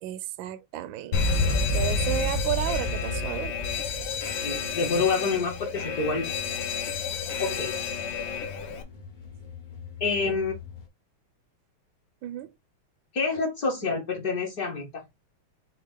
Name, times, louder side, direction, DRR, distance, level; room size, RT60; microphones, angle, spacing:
voice 1, 0.0-3.5 10.2-10.3 12.2-12.5, right 11 dB, 75° right, 1.2 m, -33 dB
Alarm, 1.1-8.8, left 4 dB, 70° left, 1.5 m, -29 dB
sound 1, 3.6-10.9, left 7 dB, 85° left, 0.4 m, -44 dB
voice 2, 4.3-6.3 7.4-7.7 10.0-10.5 13.1-14.9, left 4 dB, 50° left, 1.5 m, -27 dB
6.2 x 2.4 x 3.5 m
omnidirectional pair, 2.4 m